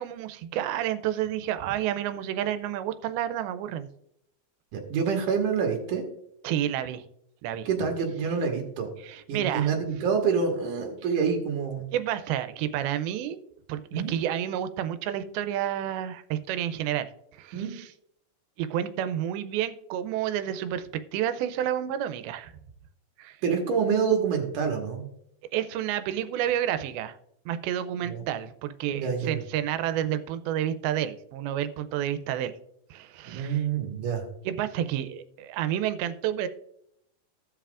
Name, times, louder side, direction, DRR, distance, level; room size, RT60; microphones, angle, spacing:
voice 1, 0.0-3.9 6.4-7.0 7.4-7.7 9.0-9.7 11.9-13.4 13.7-13.8 14.1-17.9 18.6-22.5 23.2-23.4 25.5-27.2 27.5-32.5 32.9-33.6 34.5-36.5, right 11 dB, 90° right, 11 dB, 2.5 m, -30 dB
voice 2, 4.7-6.0 7.7-8.9 9.3-11.9 13.9-14.1 17.5-17.7 23.4-25.0 28.0-28.2 28.9-29.4 33.2-34.2, right 6 dB, 65° right, 2 dB, 2.7 m, -27 dB
16.5 x 5.6 x 2.4 m, 0.75 s
omnidirectional pair, 4.3 m